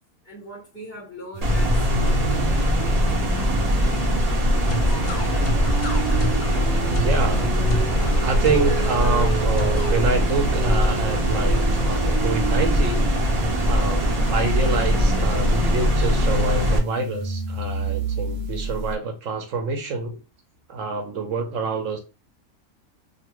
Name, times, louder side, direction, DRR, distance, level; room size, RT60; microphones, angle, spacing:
voice 1, 0.2-4.1 4.7-5.1 18.4-18.5, left 1 dB, 10° left, 1.0 m, -41 dB
sound 1, 1.3-19.0, right 3 dB, 85° right, 1.2 m, -32 dB
sound 2, 1.4-16.8, equal, 45° right, 0.5 m, -21 dB
sound 3, 4.6-9.9, left 2 dB, 50° left, 0.7 m, -30 dB
voice 2, 6.9-7.4 8.2-13.4 13.7-20.2 20.7-22.0, right 4 dB, 65° right, 0.9 m, -27 dB
2.7 x 2.5 x 2.9 m
omnidirectional pair, 1.6 m